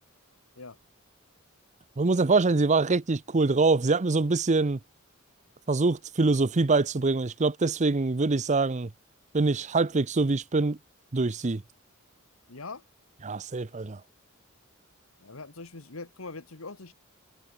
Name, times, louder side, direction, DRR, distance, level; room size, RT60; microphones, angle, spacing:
voice 1, 2.0-4.8 5.7-8.9 9.3-10.8 11.1-11.6 13.2-14.0, right 3 dB, 35° right, 0.7 m, -24 dB
voice 2, 12.5-12.8 15.2-16.9, left 3 dB, 75° left, 1.7 m, -42 dB
head